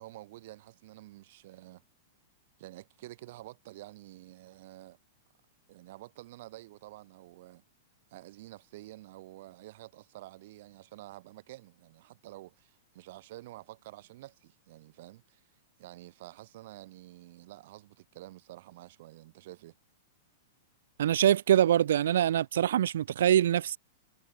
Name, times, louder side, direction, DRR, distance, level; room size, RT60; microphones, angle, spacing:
voice 1, 0.0-1.8 2.6-5.0 5.7-7.6 8.1-15.4 15.8-19.8, right 17 dB, 55° right, 1.9 m, -49 dB
voice 2, 21.0-23.8, right 11 dB, 75° right, 0.3 m, -24 dB
supercardioid pair, 155°, 0 cm